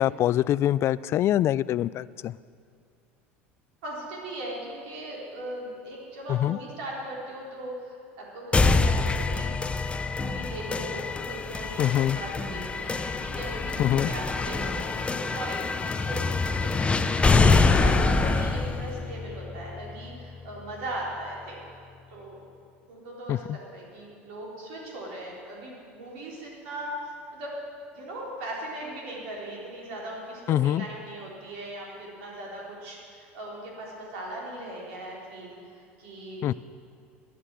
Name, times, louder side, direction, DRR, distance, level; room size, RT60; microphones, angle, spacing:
voice 1, 0.0-2.3 6.3-6.6 11.8-12.2 13.8-14.1 23.3-23.6 30.5-30.9 36.4-36.5, left 12 dB, 45° left, 19 dB, 0.3 m, -24 dB
voice 2, 3.8-9.5 10.2-16.7 17.2-21.6 22.1-22.4 22.9-27.5 27.9-36.5, right 1 dB, 70° right, -3 dB, 3.9 m, -38 dB
sound 1, 8.5-20.5, left 3 dB, 15° left, 0.7 m, -25 dB
14.0 x 10.5 x 7.6 m, 2.3 s
hypercardioid pair, 80°, 6 cm